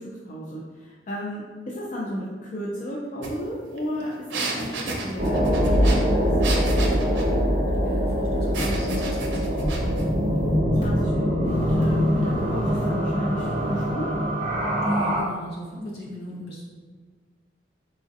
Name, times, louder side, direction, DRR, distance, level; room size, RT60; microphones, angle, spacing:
voice 1, 0.0-6.3 10.7-14.2, equal, 45° left, -5 dB, 0.4 m, -34 dB
sound 1, 3.2-3.3 3.6-7.3 8.5-10.1, right 2 dB, 85° right, 0.5 m, -32 dB
sound 2, 5.2-15.2, equal, 35° right, 1.1 m, -23 dB
voice 2, 7.8-9.9 14.8-16.6, equal, 60° left, -6 dB, 0.9 m, -34 dB
4.1 x 2.6 x 2.5 m, 1.5 s
head